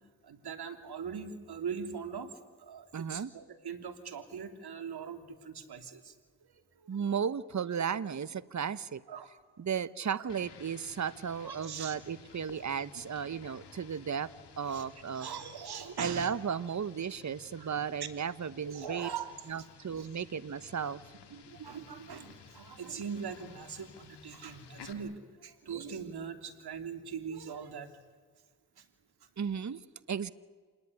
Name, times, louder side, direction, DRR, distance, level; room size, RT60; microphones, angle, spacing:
voice 1, 0.2-2.3 2.6-6.1 6.4-7.0 9.1-9.3 10.2-10.3 11.4-12.0 12.5-12.6 14.6-14.8 15.1-16.3 17.6-17.8 18.6-19.3 20.0-20.1 21.3-27.9 28.8-28.9, right 6 dB, 70° right, 8 dB, 3.1 m, -41 dB
voice 2, 2.9-3.3 6.9-9.0 9.6-14.3 14.6-15.3 16.0-19.1 19.5-21.0 29.4-30.3, right 7 dB, 45° right, 16 dB, 1.2 m, -35 dB
sound 1, 10.3-24.9, left 6 dB, 85° left, 2.8 m, -55 dB
27.5 x 20.0 x 9.7 m, 1.5 s
cardioid pair, 50°, 40 cm